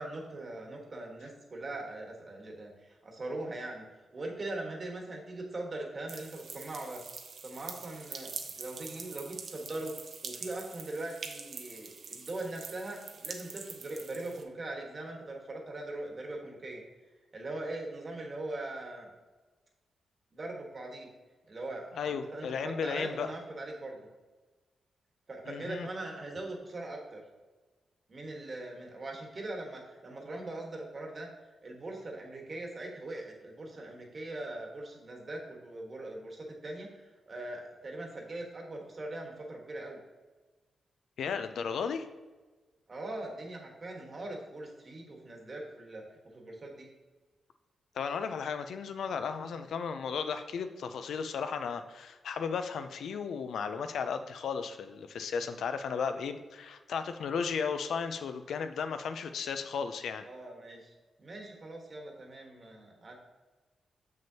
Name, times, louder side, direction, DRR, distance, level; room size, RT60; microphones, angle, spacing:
voice 1, 0.0-3.9 4.1-7.0 7.4-9.9 10.2-16.8 17.3-19.1 20.3-21.1 21.5-24.1 25.3-27.2 28.1-31.3 31.6-40.0 42.9-46.9 60.2-60.9 61.2-63.2, right 2 dB, 35° right, 1 dB, 1.4 m, -41 dB
sound 1, 6.1-14.4, right 5 dB, 55° right, 0.8 m, -45 dB
voice 2, 21.9-23.3 25.5-25.9 41.2-42.1 48.0-60.3, left 6 dB, 80° left, 9 dB, 0.5 m, -35 dB
7.1 x 6.3 x 2.8 m, 1.3 s
wide cardioid pair, 120°, 0 cm